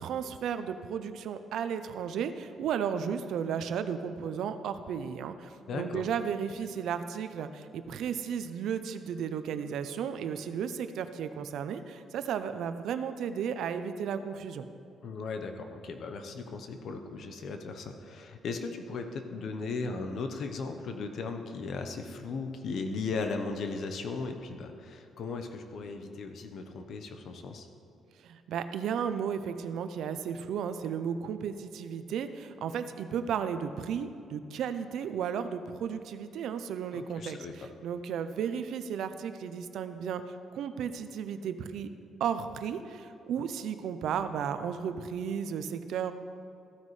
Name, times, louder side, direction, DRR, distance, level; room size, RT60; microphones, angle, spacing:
voice 1, 0.0-14.7 28.2-41.9 42.2-46.1, right 7 dB, 75° right, 10 dB, 0.5 m, -34 dB
voice 2, 5.7-6.0 15.0-27.7 36.9-37.5, left 4 dB, 65° left, 6 dB, 0.9 m, -37 dB
14.5 x 9.4 x 3.3 m, 2.7 s
cardioid pair, 90°, 0 cm